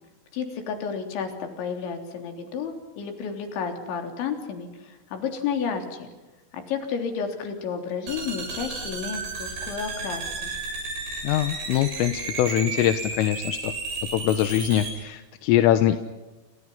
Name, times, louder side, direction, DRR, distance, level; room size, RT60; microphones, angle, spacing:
voice 1, 0.3-6.1 6.5-10.5, left 6 dB, 65° left, 5 dB, 5.7 m, -31 dB
sound 1, 8.1-14.9, right 4 dB, 60° right, 9.0 m, -33 dB
voice 2, 11.2-13.7 14.1-16.0, left 12 dB, 85° left, 9 dB, 3.7 m, -23 dB
29.0 x 28.5 x 5.7 m, 1.1 s
omnidirectional pair, 5.7 m